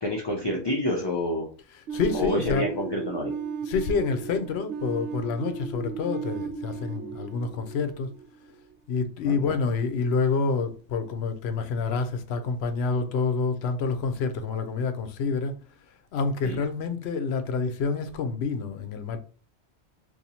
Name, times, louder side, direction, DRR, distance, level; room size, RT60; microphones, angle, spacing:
voice 1, 0.0-1.5 2.1-3.3 9.2-9.5 16.4-16.6, left 1 dB, 30° left, 0.5 m, -28 dB
voice 2, 1.7-2.7 3.6-8.1 8.9-15.5 16.1-19.2, left 4 dB, 75° left, 0.8 m, -28 dB
sound 1, 1.9-8.6, right 5 dB, 85° right, 0.9 m, -36 dB
2.7 x 2.6 x 4.1 m
omnidirectional pair, 1.1 m